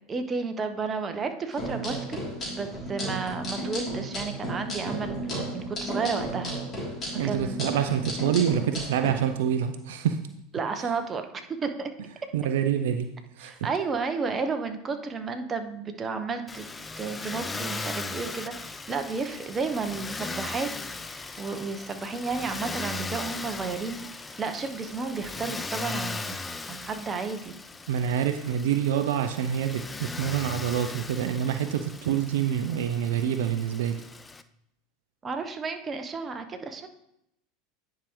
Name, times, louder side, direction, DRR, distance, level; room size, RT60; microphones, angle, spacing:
voice 1, 0.1-2.2 2.5-6.6 7.1-7.6 10.5-11.9 13.4-16.7 17.0-20.7 21.0-26.4 26.7-27.5 35.2-36.9, right 4 dB, 25° right, 6 dB, 0.9 m, -32 dB
sound 1, 1.5-9.1, right 1 dB, 35° left, 3.1 m, -34 dB
voice 2, 7.2-10.2 12.3-13.5 27.9-34.0, right 9 dB, 70° right, 8 dB, 0.5 m, -27 dB
Motor vehicle (road), 16.5-34.4, left 3 dB, 15° left, 0.4 m, -38 dB
9.9 x 4.9 x 3.1 m, 0.78 s
hypercardioid pair, 80°, 0 cm